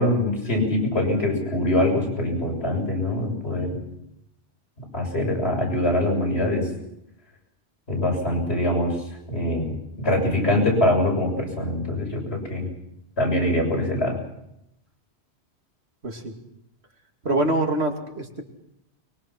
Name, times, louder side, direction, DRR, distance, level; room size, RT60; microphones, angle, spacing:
voice 1, 0.0-3.8 4.9-6.6 7.9-8.9 9.3-12.7 13.2-14.2, left 1 dB, 70° left, 0 dB, 7.5 m, -23 dB
voice 2, 16.0-16.3 17.2-18.4, right 2 dB, 70° right, 3 dB, 3.0 m, -24 dB
23.5 x 22.0 x 6.0 m, 0.81 s
omnidirectional pair, 1.1 m